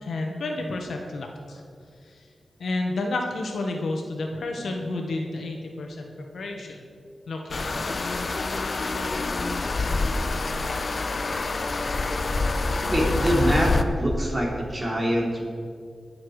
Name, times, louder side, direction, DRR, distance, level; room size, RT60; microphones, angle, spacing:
voice 1, 0.0-1.6 2.0-2.2 2.6-6.9 7.3-7.7, left 2 dB, 85° left, 2 dB, 1.7 m, -31 dB
sound 1, 7.5-13.8, left 3 dB, 45° left, 0.7 m, -26 dB
voice 2, 12.8-13.7 14.0-15.5, right 1 dB, 25° right, -2 dB, 3.4 m, -24 dB
22.0 x 7.3 x 5.0 m, 2.2 s
wide cardioid pair, 90°, 0 cm